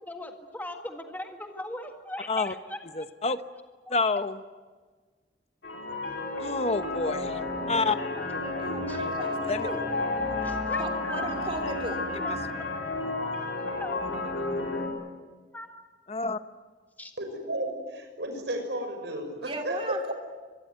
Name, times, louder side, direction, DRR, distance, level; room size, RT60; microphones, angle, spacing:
voice 1, 0.0-3.3 3.9-4.0 8.2-8.3 8.5-8.6 8.9-9.0 10.4-11.3 12.2-12.5 13.8-14.0 15.5-15.7 17.0-17.1, left 1 dB, 10° left, 4 dB, 1.7 m, -39 dB
voice 2, 3.0-3.4 3.9-4.3 6.4-7.4 7.7-8.0 9.4-9.7 16.1-16.4, left 3 dB, 35° left, 11 dB, 0.9 m, -28 dB
sound 1, 5.6-14.9, left 2 dB, 75° left, 4.3 m, -31 dB
voice 3, 8.6-9.9 10.8-12.1 19.4-20.1, right 1 dB, 30° right, 3 dB, 2.9 m, -36 dB
voice 4, 17.2-20.1, right 1 dB, 70° right, 5 dB, 6.2 m, -33 dB
25.0 x 21.5 x 9.3 m, 1.4 s
head